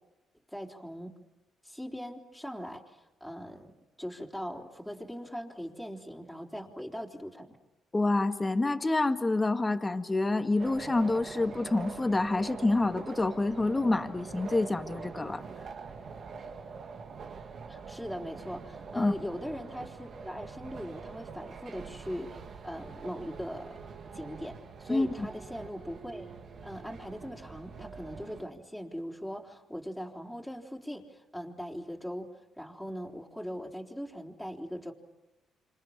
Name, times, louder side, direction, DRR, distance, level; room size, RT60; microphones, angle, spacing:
voice 1, 0.5-1.2 1.6-7.6 17.7-23.8 24.1-26.3 26.6-34.9, equal, ahead, -1 dB, 4.0 m, -40 dB
voice 2, 7.9-15.4 19.0-19.1 24.9-25.3, left 2 dB, 20° left, 8 dB, 1.9 m, -27 dB
sound 1, 10.6-28.4, right 5 dB, 55° right, 2.2 m, -44 dB
28.5 x 27.0 x 7.4 m, 1.0 s
cardioid pair, 90°, 0 cm